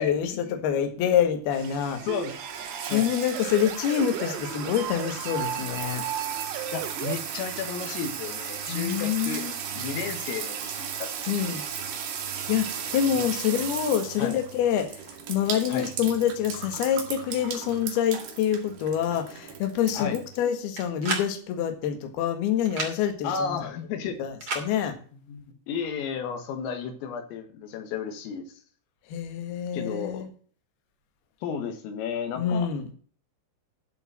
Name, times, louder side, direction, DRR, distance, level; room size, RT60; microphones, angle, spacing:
voice 1, 0.0-2.0 2.9-6.0 8.7-9.5 11.3-11.6 12.5-15.0 15.3-23.6 24.2-25.0 29.1-30.3 32.4-32.9, left 9 dB, 60° left, 5 dB, 3.0 m, -26 dB
sound 1, 1.5-20.4, right 7 dB, 65° right, 3.9 m, -36 dB
sound 2, 2.1-7.1, right 10 dB, 90° right, 4.0 m, -35 dB
voice 2, 6.7-9.5 9.7-11.1 11.6-11.7 13.2-13.3 14.2-14.3 15.7-15.9 20.0-20.2 23.2-24.2 25.3-28.5 29.7-30.3 31.4-32.7, left 6 dB, 80° left, 6 dB, 4.1 m, -33 dB
sound 3, 20.8-21.3 22.6-22.9 24.4-24.7, right 3 dB, 30° right, 1.8 m, -30 dB
11.5 x 5.4 x 7.3 m, 0.44 s
omnidirectional pair, 5.9 m